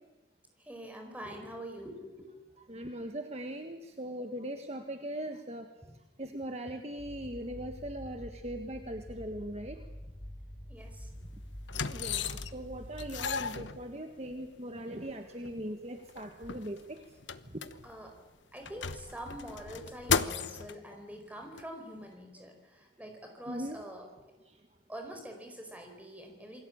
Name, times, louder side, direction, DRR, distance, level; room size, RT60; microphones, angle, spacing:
voice 1, 0.6-2.3 5.8-5.9 10.7-11.1 17.8-18.2 18.5-24.1 24.9-26.6, right 1 dB, 10° right, 4 dB, 4.7 m, -45 dB
voice 2, 2.7-5.7 6.2-9.8 11.9-17.0 17.5-17.6 23.5-23.8, right 1 dB, 35° right, 5 dB, 1.5 m, -40 dB
sound 1, 7.0-13.5, equal, 20° left, 6.1 m, -46 dB
sound 2, 10.8-11.0 11.7-12.7 13.0-14.3 15.1-15.2 15.5-15.6 16.0-18.1 18.6-20.8 21.6-21.7, left 6 dB, 75° left, 1.1 m, -35 dB
28.5 x 21.5 x 8.7 m, 1.0 s
head